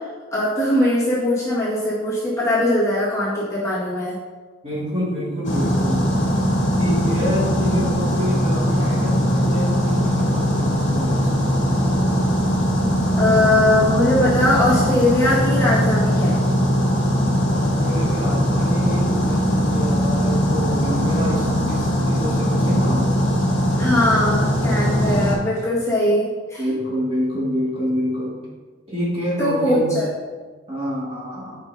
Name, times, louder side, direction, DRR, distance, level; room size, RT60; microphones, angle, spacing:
voice 1, 0.3-4.1 13.2-16.4 23.8-26.6 29.4-30.1, left 1 dB, 15° left, -9 dB, 1.8 m, -20 dB
voice 2, 4.6-6.0 6.8-11.4 17.5-23.1 26.6-28.4 28.9-30.0 30.7-31.6, equal, 30° right, -7 dB, 2.1 m, -27 dB
sound 1, 5.4-25.3, equal, 55° left, 1.5 m, -20 dB
8.6 x 5.5 x 2.8 m, 1.4 s
head